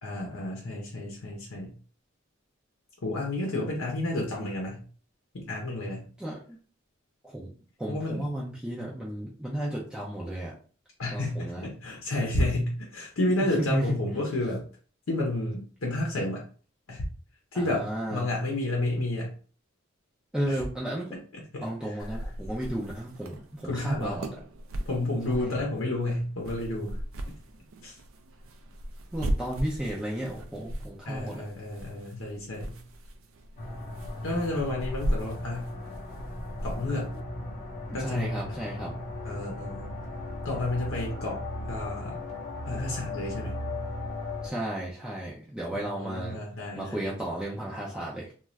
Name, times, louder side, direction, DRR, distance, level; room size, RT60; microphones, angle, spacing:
voice 1, 0.0-1.7 3.0-4.8 5.3-6.0 7.9-8.3 11.0-14.6 15.1-16.4 16.9-17.0 17.5-19.3 20.5-20.6 21.3-22.1 23.6-24.2 24.9-27.0 27.8-28.0 31.0-32.8 34.2-35.8 36.6-37.1 37.9-38.6 39.2-40.0 40.4-42.2 42.7-43.5 45.7-47.0, left 1 dB, 80° left, -1 dB, 0.7 m, -31 dB
voice 2, 6.2-6.6 7.3-7.5 7.8-10.5 11.1-11.6 13.3-13.9 17.5-18.2 20.3-21.1 21.6-24.3 25.4-25.5 29.1-31.4 38.0-38.9 44.4-46.4 46.7-48.3, right 1 dB, 5° right, -5 dB, 0.4 m, -33 dB
sound 1, 22.0-37.2, right 1 dB, 70° right, 0.4 m, -38 dB
sound 2, 33.6-44.5, left 2 dB, 35° left, 0.7 m, -37 dB
2.5 x 2.3 x 3.1 m, 0.41 s
head